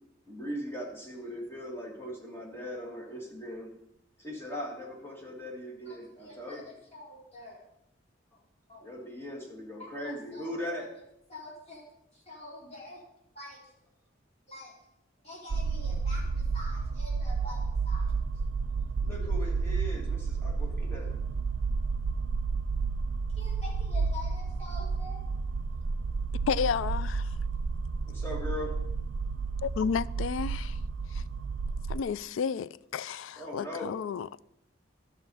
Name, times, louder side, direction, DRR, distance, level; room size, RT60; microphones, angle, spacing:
voice 1, 0.3-3.7 4.2-6.7 8.8-10.9 19.0-21.2 28.1-28.7 33.4-34.0, left 1 dB, 10° left, 2.0 m, -39 dB
voice 2, 5.8-7.6 8.7-8.9 9.8-11.0 11.3-11.8 12.1-13.0 13.3-13.6 14.5-14.7 15.2-17.6 17.8-18.1 19.1-19.2 23.3-25.2, left 2 dB, 35° left, 4.4 m, -46 dB
sound 1, 15.5-32.0, right 4 dB, 70° right, 0.4 m, -31 dB
voice 3, 26.5-27.3 29.6-30.8 31.1-31.2 31.9-34.4, left 6 dB, 85° left, 0.3 m, -32 dB
12.5 x 6.2 x 5.6 m
head